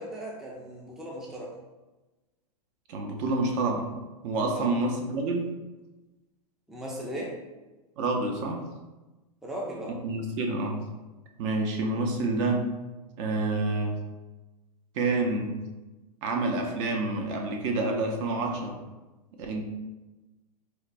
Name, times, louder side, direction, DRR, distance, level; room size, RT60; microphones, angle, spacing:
voice 1, 0.0-1.6 4.5-4.7 6.7-7.4 9.4-10.0, right 1 dB, ahead, -3 dB, 0.4 m, -37 dB
voice 2, 2.9-3.9 4.2-5.5 8.0-8.6 9.9-10.8 11.4-12.7 13.2-14.0 14.9-15.6 16.2-18.8 19.4-19.6, right 2 dB, 50° right, 2 dB, 0.6 m, -28 dB
4.4 x 2.2 x 2.5 m, 1.1 s
hypercardioid pair, 125°, 21 cm